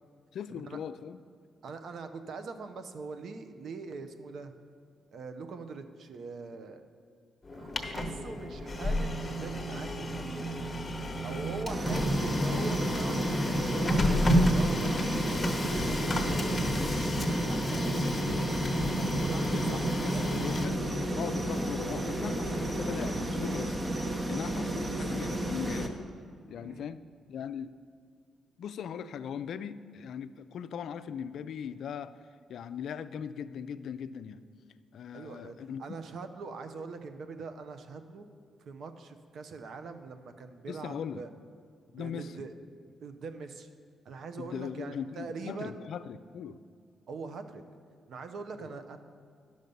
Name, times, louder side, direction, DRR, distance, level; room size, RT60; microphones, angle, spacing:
voice 1, 0.3-1.2 19.0-19.2 19.5-20.8 21.1-25.9 26.5-27.0 27.3-27.8 28.6-32.2 32.5-34.4 34.9-36.0 40.7-41.2 41.9-42.5 44.4-46.6 48.6-48.7, left 7 dB, 75° left, 13 dB, 0.4 m, -39 dB
voice 2, 1.6-4.5 5.1-6.8 7.5-10.5 11.2-15.5 15.8-17.9 19.3-20.3 26.6-26.9 35.1-38.3 38.7-41.3 41.9-42.5 43.0-43.7 44.0-45.8 47.1-47.6 48.1-49.0, right 4 dB, 70° right, 8 dB, 0.7 m, -42 dB
Printer, 7.5-23.2, equal, 25° left, 1.0 m, -31 dB
sound 1, 11.7-25.9, right 1 dB, 20° right, 1.0 m, -32 dB
sound 2, 14.0-14.7 15.0-17.3 17.6-19.3, left 1 dB, 90° right, 2.1 m, -39 dB
10.5 x 6.5 x 5.4 m, 2.2 s
cardioid pair, 80°, 0 cm